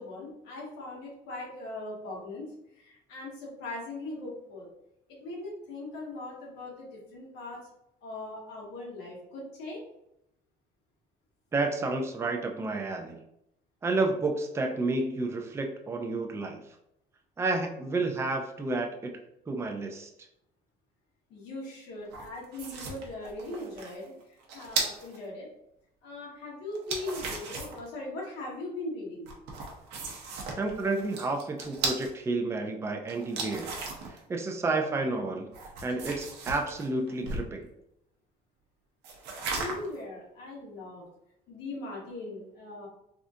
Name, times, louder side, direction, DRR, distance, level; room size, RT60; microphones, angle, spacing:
voice 1, 0.0-2.5 2.7-4.7 5.1-7.6 8.0-9.8 21.3-25.5 26.0-29.3 39.5-41.0 41.5-42.9, left 2 dB, 90° left, -4 dB, 1.4 m, -40 dB
voice 2, 11.5-13.2 13.8-16.6 17.4-19.1 19.5-20.1 30.6-33.7 34.1-35.5 35.8-37.7, right 3 dB, 15° right, 3 dB, 0.4 m, -30 dB
sound 1, 22.1-25.2 26.7-27.9 29.3-32.1 33.1-34.2 35.5-37.5 39.0-40.0, right 3 dB, 90° right, 0.7 m, -36 dB
3.5 x 2.4 x 2.6 m, 0.79 s
cardioid pair, 110°, 17 cm